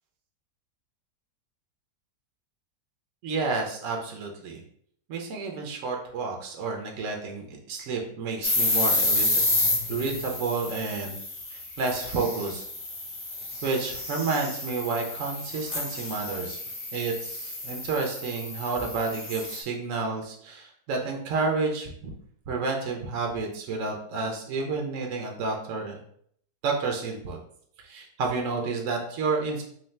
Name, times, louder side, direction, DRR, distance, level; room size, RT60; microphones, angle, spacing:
voice 1, 3.2-4.6 5.1-9.2 9.9-11.2 11.5-12.6 13.6-16.6 16.9-22.1 22.5-26.0 26.6-27.4 27.8-29.6, right 4 dB, 60° right, 1 dB, 0.9 m, -30 dB
sound 1, 8.4-19.6, left 2 dB, 35° left, 0.4 m, -30 dB
3.8 x 2.7 x 3.2 m, 0.65 s
omnidirectional pair, 1.7 m